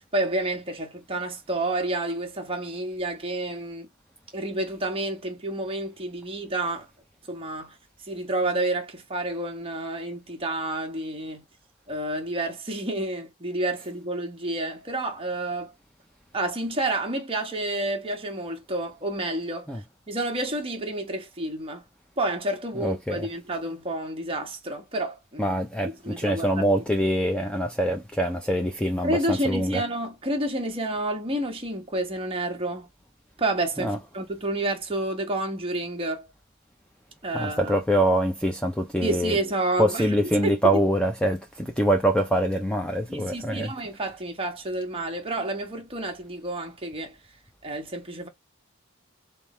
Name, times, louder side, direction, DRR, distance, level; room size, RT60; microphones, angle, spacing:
voice 1, 0.1-3.9 4.3-6.9 7.3-7.8 8.1-11.4 11.9-15.7 16.3-19.7 20.1-21.8 22.2-25.6 26.0-26.4 29.0-32.9 33.4-36.3 37.2-37.8 39.0-40.3 40.7-40.8 43.1-47.2 47.6-48.3, right 1 dB, 25° right, 1.2 m, -29 dB
voice 2, 22.8-23.3 25.4-29.8 33.8-34.0 37.3-39.4 39.8-43.7, right 1 dB, 5° left, 0.5 m, -24 dB
3.5 x 2.6 x 4.3 m
head